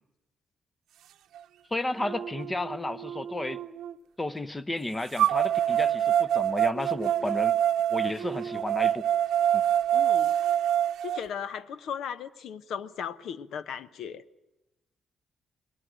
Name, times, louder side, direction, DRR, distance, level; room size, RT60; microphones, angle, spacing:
sound 1, 1.4-1.5 2.0-3.9 5.2-11.2, right 10 dB, 90° right, 0.8 m, -26 dB
voice 1, 1.7-3.6 4.2-7.6 7.9-9.1 9.5-9.6, left 1 dB, 10° left, 16 dB, 0.7 m, -32 dB
voice 2, 9.9-10.3 11.0-14.2, left 8 dB, 65° left, 15 dB, 0.9 m, -37 dB
20.5 x 19.0 x 9.1 m, 0.96 s
cardioid pair, 180°, 0 cm